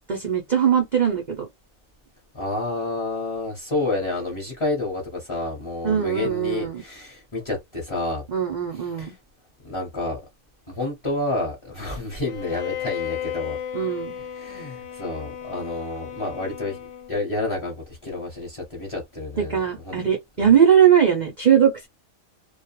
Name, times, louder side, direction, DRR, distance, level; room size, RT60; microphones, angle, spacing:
voice 1, 0.1-1.5 5.8-6.8 8.3-9.1 13.7-14.2 19.4-21.9, right 8 dB, 55° right, 0.5 m, -20 dB
voice 2, 2.3-8.2 8.8-9.2 9.6-10.2 10.7-13.6 14.3-16.8 17.1-20.0, left 2 dB, 25° left, 0.8 m, -29 dB
Bowed string instrument, 12.2-17.3, left 10 dB, 65° left, 0.8 m, -34 dB
2.3 x 2.2 x 2.9 m
omnidirectional pair, 1.4 m